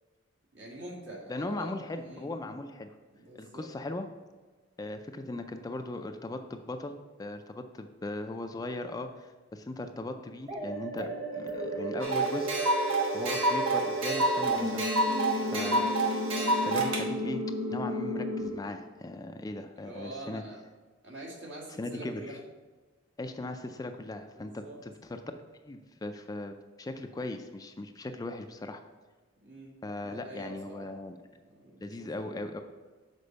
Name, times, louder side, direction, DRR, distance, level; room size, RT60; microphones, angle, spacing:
voice 1, 0.5-1.7 2.0-2.3 3.1-3.7 15.3-15.6 19.8-20.6 21.0-22.4 24.4-24.8 29.4-29.7 30.0-30.9 31.4-32.5, right 1 dB, 65° right, -2 dB, 1.9 m, -45 dB
voice 2, 1.3-2.9 3.3-4.1 4.8-12.9 13.1-14.9 15.4-15.9 16.7-17.4 17.7-20.4 21.8-22.4 23.2-25.2 25.7-28.8 29.8-31.2 31.8-32.6, left 2 dB, 20° left, 7 dB, 0.4 m, -38 dB
sound 1, 10.5-18.5, equal, 30° right, 1.3 m, -33 dB
sound 2, 12.0-17.0, right 2 dB, 85° right, 1.1 m, -28 dB
6.7 x 4.4 x 5.2 m, 1.3 s
head